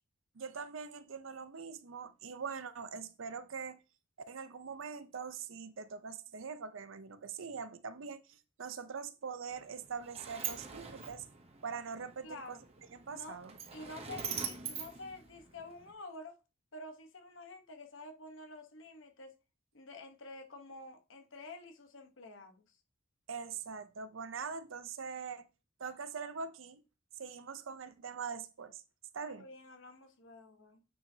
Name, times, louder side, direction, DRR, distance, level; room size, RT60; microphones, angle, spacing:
voice 1, 0.4-3.8 4.3-11.2 11.6-12.6 12.9-13.5 23.3-25.5 25.8-26.8 27.2-28.8 29.1-29.5, right 6 dB, 70° right, 0.6 m, -43 dB
Sliding door, 9.5-15.9, right 7 dB, 30° right, 0.8 m, -44 dB
voice 2, 12.2-12.6 13.1-13.4 13.7-16.4 16.7-19.4 19.7-22.8 29.3-30.8, left 2 dB, 65° left, 1.1 m, -49 dB
9.0 x 4.7 x 2.8 m
head